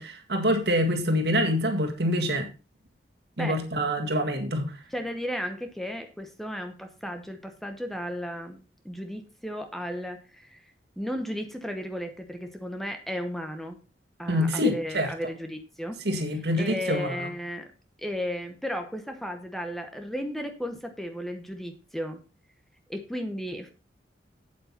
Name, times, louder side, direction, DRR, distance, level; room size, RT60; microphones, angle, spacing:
voice 1, 0.0-2.5 3.4-4.8 14.3-15.1 16.0-17.1, equal, 65° right, 1.9 m, -26 dB
voice 2, 3.4-3.9 4.9-10.6 11.0-13.8 14.2-16.0 16.6-17.7 18.0-22.2 22.9-23.7, equal, ahead, 0.9 m, -34 dB
8.4 x 8.3 x 4.3 m
head